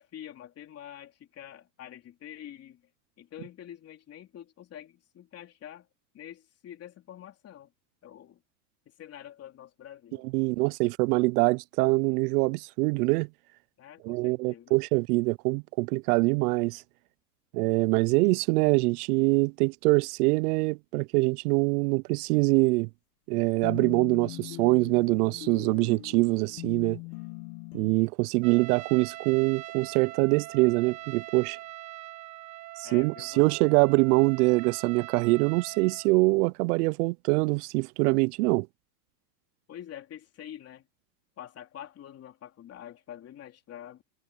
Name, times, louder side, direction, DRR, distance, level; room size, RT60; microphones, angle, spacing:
voice 1, 0.0-2.8 3.2-5.9 6.1-7.7 8.0-8.4 8.8-10.2 13.8-14.8 32.8-33.5 39.7-40.9 41.4-44.0, left 10 dB, 30° left, 3.5 m, -46 dB
voice 2, 10.3-13.3 14.0-16.8 17.5-22.9 23.3-27.0 27.7-31.6 32.8-38.7, right 26 dB, 70° right, 0.5 m, -24 dB
sound 1, 23.6-28.0, left 25 dB, 60° left, 1.3 m, -41 dB
Trumpet, 28.4-36.1, right 17 dB, 35° right, 1.2 m, -43 dB
supercardioid pair, 145°, 48 cm